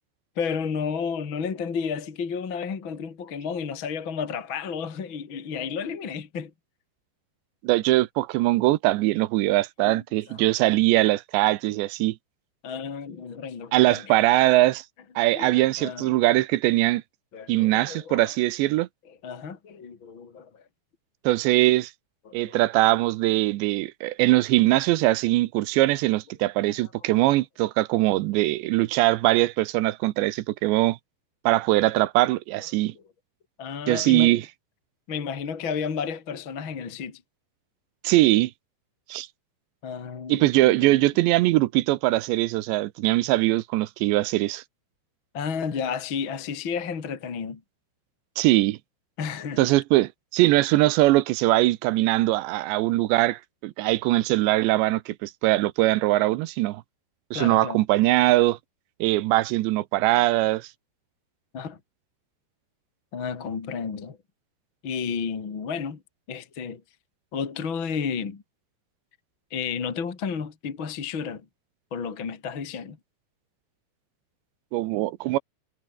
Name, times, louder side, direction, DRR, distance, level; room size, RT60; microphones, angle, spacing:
voice 1, 0.4-6.5 9.9-10.0 10.3-10.4 12.6-14.2 15.3-16.1 17.3-18.3 19.2-20.6 22.3-22.6 26.8-27.2 33.6-34.4 35.1-37.2 39.8-41.0 45.3-47.6 49.2-49.7 57.3-57.8 61.5-61.8 63.1-64.2 64.8-66.0 66.3-66.8 67.3-68.4 69.5-71.4 71.9-73.0, left 6 dB, 35° left, 2.6 m, -32 dB
voice 2, 7.6-12.2 13.7-14.8 15.2-17.0 17.5-18.9 21.2-21.9 22.3-31.0 31.5-32.9 33.9-34.5 38.0-38.5 39.1-39.3 40.3-44.6 48.4-48.8 49.6-56.8 57.3-58.6 59.0-60.7 74.7-75.4, right 18 dB, 80° right, 3.0 m, -21 dB
omnidirectional pair, 5.3 m